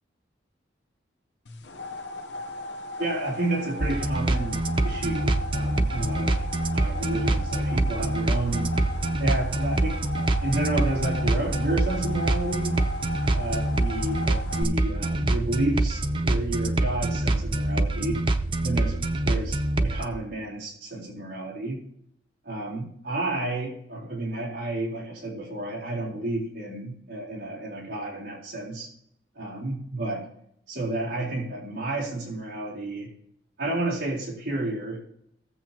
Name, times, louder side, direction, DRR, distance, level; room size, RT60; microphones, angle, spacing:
sound 1, 1.5-14.6, left 2 dB, 70° left, 1.0 m, -37 dB
voice 1, 3.0-8.7 9.2-12.8 13.3-18.2 18.6-21.8 22.4-28.9 29.3-30.3 30.7-33.1 33.6-35.0, right 2 dB, 70° right, -5 dB, 3.9 m, -31 dB
sound 2, 3.8-20.0, right 2 dB, 30° right, 0.6 m, -25 dB
19.0 x 7.5 x 2.9 m, 0.70 s
head